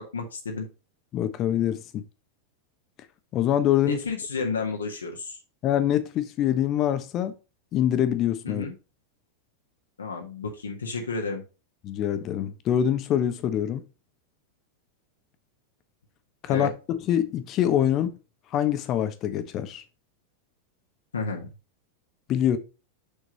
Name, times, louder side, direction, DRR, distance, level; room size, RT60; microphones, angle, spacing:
voice 1, 0.1-0.7 3.8-5.4 8.4-8.7 10.0-11.4 16.5-16.7 21.1-21.5, left 4 dB, 70° left, 1.5 m, -31 dB
voice 2, 1.1-2.0 3.3-4.0 5.6-7.3 7.7-8.7 11.8-13.8 16.4-18.2 18.5-19.8 22.3-22.6, left 10 dB, 35° left, 1.0 m, -25 dB
6.8 x 6.3 x 2.9 m
figure-of-eight pair, 90°, 0 cm